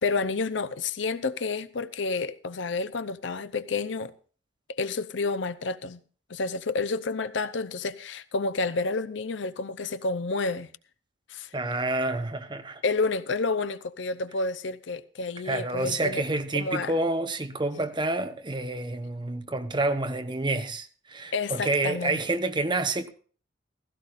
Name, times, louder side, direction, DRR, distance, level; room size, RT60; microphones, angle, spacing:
voice 1, 0.0-4.1 4.7-6.0 6.3-10.7 11.3-11.5 12.8-16.2 16.5-16.9 21.3-22.2, left 3 dB, 70° left, 0.7 m, -30 dB
voice 2, 11.5-12.8 15.4-23.1, right 2 dB, 25° right, 1.0 m, -28 dB
16.0 x 15.5 x 2.6 m
head